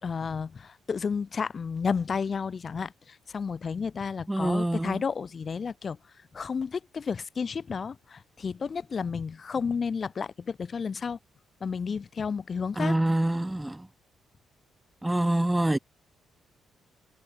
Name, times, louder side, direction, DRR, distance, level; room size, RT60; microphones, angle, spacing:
voice 1, 0.0-6.0 6.3-11.2 11.6-13.0, left 5 dB, 40° left, 2.7 m, -32 dB
voice 2, 4.3-5.0 12.8-13.8 15.0-15.8, right 1 dB, 10° right, 0.5 m, -25 dB
cardioid pair, 90°, 0 cm